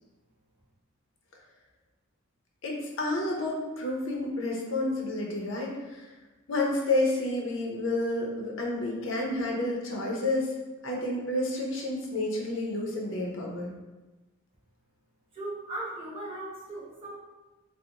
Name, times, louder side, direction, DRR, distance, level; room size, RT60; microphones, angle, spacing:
voice 1, 2.6-6.1 6.5-10.6 10.8-13.7, left 2 dB, 60° left, -1 dB, 0.6 m, -30 dB
voice 2, 15.3-17.1, right 2 dB, 25° right, -6 dB, 0.7 m, -37 dB
3.7 x 2.0 x 2.8 m, 1.1 s
head